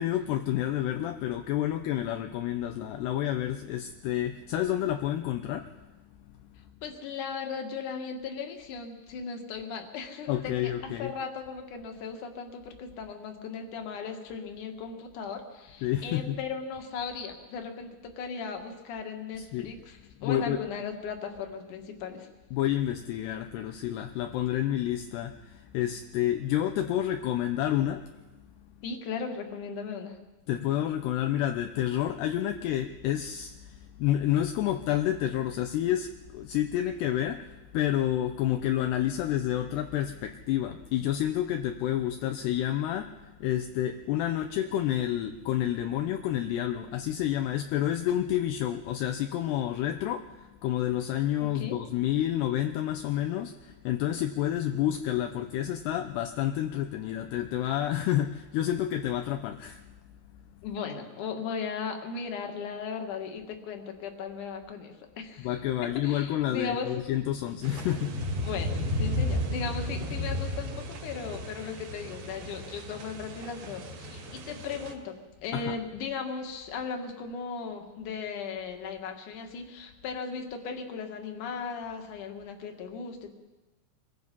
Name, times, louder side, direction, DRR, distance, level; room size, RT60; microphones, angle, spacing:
voice 1, 0.0-5.9 10.3-11.1 15.8-16.4 19.5-19.7 20.2-20.6 22.5-28.1 30.5-59.9 65.4-68.4 75.5-75.8, left 12 dB, 75° left, 6 dB, 2.8 m, -29 dB
voice 2, 6.8-22.3 28.8-30.2 51.5-51.8 60.6-65.5 66.0-67.0 68.4-83.3, left 5 dB, 50° left, 4 dB, 3.1 m, -37 dB
sound 1, 67.6-74.9, left 1 dB, 60° right, 3.9 m, -34 dB
27.0 x 22.5 x 5.5 m, 1.1 s
omnidirectional pair, 5.1 m